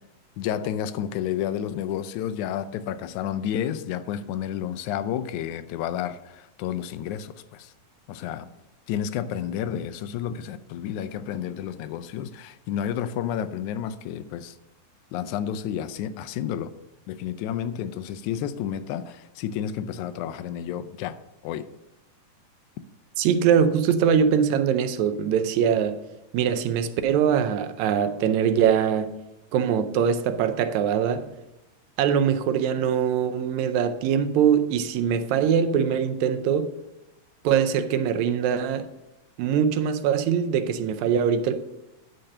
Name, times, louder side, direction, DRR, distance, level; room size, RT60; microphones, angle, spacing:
voice 1, 0.4-7.7 8.1-8.5 8.9-14.6 15.1-16.7 17.1-21.2 21.4-21.7, left 9 dB, 90° left, 2.0 m, -31 dB
voice 2, 23.2-26.0 26.3-29.1 29.5-31.3 32.0-36.7 37.4-38.9 39.4-41.6, right 8 dB, 80° right, 2.0 m, -22 dB
10.0 x 3.9 x 6.5 m
omnidirectional pair, 3.3 m